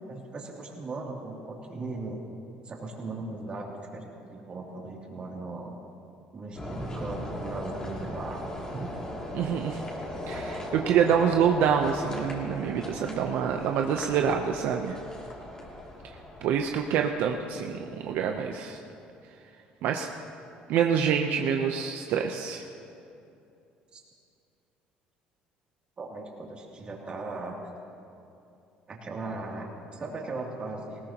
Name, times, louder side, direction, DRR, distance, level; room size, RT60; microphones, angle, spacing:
voice 1, 0.0-2.2 2.6-5.7 6.3-8.4 8.7-8.9 23.9-24.0 26.0-27.5 28.9-30.9, right 3 dB, 30° right, -2 dB, 2.8 m, -38 dB
sound 1, 6.5-17.8, left 1 dB, 20° left, 2.8 m, -38 dB
voice 2, 9.3-9.8 10.3-15.0 16.4-18.8 19.8-20.1 20.7-22.6, right 7 dB, 70° right, 3 dB, 0.8 m, -26 dB
20.0 x 17.5 x 3.0 m, 2.7 s
cardioid pair, 115°, 3 cm